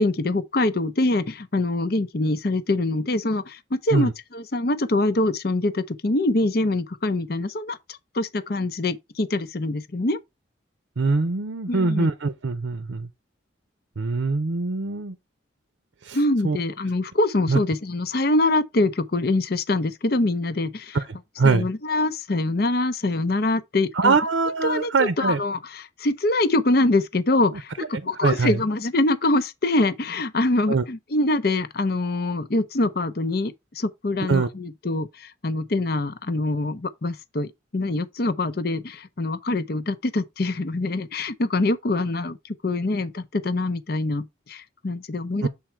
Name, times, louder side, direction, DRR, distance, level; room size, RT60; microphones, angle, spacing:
voice 1, 0.0-7.8 8.1-10.2 11.7-12.1 16.1-21.0 21.4-24.2 24.6-42.4 42.6-45.5, left 2 dB, 50° left, 0.7 m, -24 dB
voice 2, 11.0-13.1 14.0-15.1 16.0-16.2 16.4-16.6 17.5-17.6 20.9-21.0 21.4-21.7 24.0-25.4 28.2-28.6 30.7-30.8 34.3-34.5 45.4-45.5, right 4 dB, 75° right, 0.6 m, -22 dB
7.1 x 3.7 x 4.4 m
head